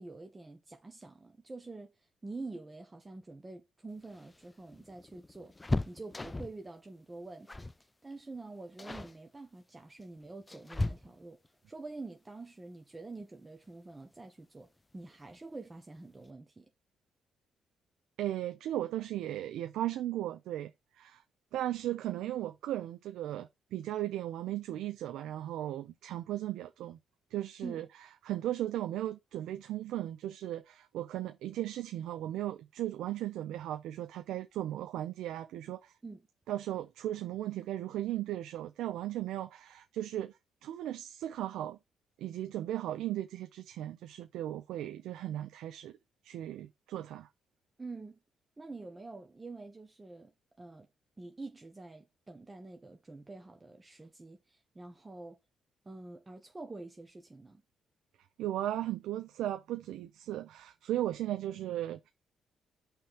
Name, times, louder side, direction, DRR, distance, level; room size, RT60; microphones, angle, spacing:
voice 1, 0.0-11.4 11.7-16.7 27.6-27.8 36.0-36.2 47.8-48.2 48.6-50.9 51.2-55.4 55.8-57.6, right 3 dB, 20° right, 1.1 m, -47 dB
sound 1, 4.0-6.7 7.5-7.8 8.1-8.4 8.8-9.2 10.0-11.5 13.2-13.3 13.7-13.8 15.0-15.4 15.7-15.8 16.1-16.3, left 2 dB, 20° left, 0.4 m, -37 dB
voice 2, 18.2-21.2 21.5-27.0 27.3-27.9 28.2-35.9 36.5-41.8 42.2-46.0 46.2-47.3 58.4-62.1, right 13 dB, 85° right, 0.6 m, -36 dB
5.7 x 3.4 x 5.8 m
cardioid pair, 90°, 0 cm